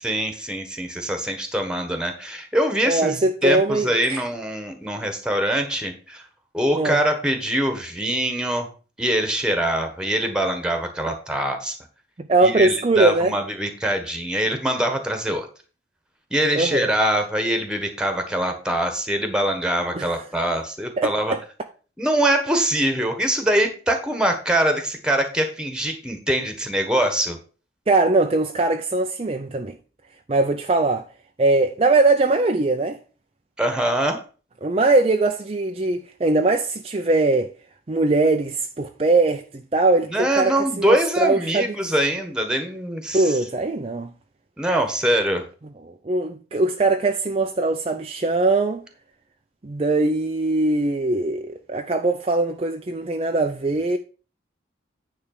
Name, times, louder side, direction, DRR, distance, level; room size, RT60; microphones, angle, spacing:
voice 1, 0.0-6.2 6.5-8.7 9.0-11.8 12.4-15.5 16.3-21.3 22.0-27.4 33.6-34.2 40.1-43.4 44.6-45.4, right 1 dB, 5° right, 1.4 m, -23 dB
voice 2, 2.8-4.2 6.8-7.0 12.2-13.3 16.5-16.9 20.0-20.2 21.0-21.4 27.9-29.7 30.3-31.1 31.4-33.0 34.6-37.5 37.9-41.7 43.1-44.1 45.9-48.8 49.6-54.0, right 2 dB, 30° right, 0.5 m, -21 dB
9.8 x 3.4 x 6.6 m
head